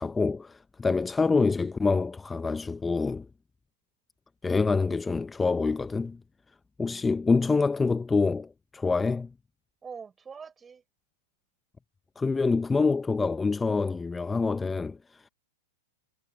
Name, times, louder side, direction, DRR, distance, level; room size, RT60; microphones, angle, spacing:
voice 1, 0.0-3.3 4.4-6.2 6.8-9.3 12.2-15.2, left 4 dB, 10° left, 0.6 m, -26 dB
voice 2, 6.9-7.5 9.8-10.8, right 6 dB, 20° right, 6.2 m, -45 dB
hypercardioid pair, 115°, 0 cm